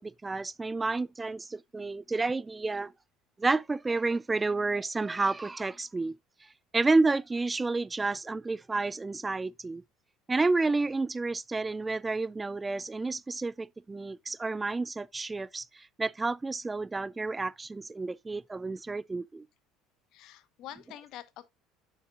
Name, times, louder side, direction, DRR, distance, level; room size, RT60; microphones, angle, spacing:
voice 1, 0.0-2.9 3.4-6.2 6.7-9.8 10.3-19.4, right 3 dB, 20° right, 0.4 m, -30 dB
voice 2, 20.1-21.5, left 12 dB, 60° left, 1.2 m, -46 dB
9.5 x 7.3 x 2.5 m
hypercardioid pair, 80°, 0 cm